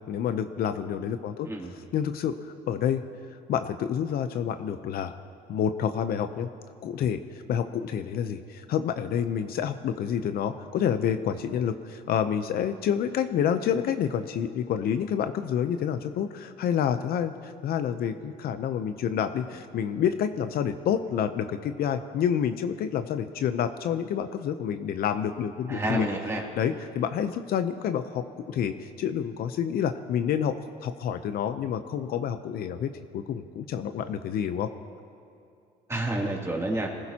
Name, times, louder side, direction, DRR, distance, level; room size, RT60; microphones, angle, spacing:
voice 1, 0.1-1.5 1.9-3.0 3.5-5.1 5.5-6.5 6.8-26.1 26.6-34.7, left 8 dB, 65° left, 9 dB, 0.7 m, -28 dB
voice 2, 25.7-26.4 35.9-36.9, right 1 dB, 15° right, -2 dB, 2.8 m, -29 dB
26.0 x 15.5 x 2.9 m, 2.5 s
cardioid pair, 110°, 17 cm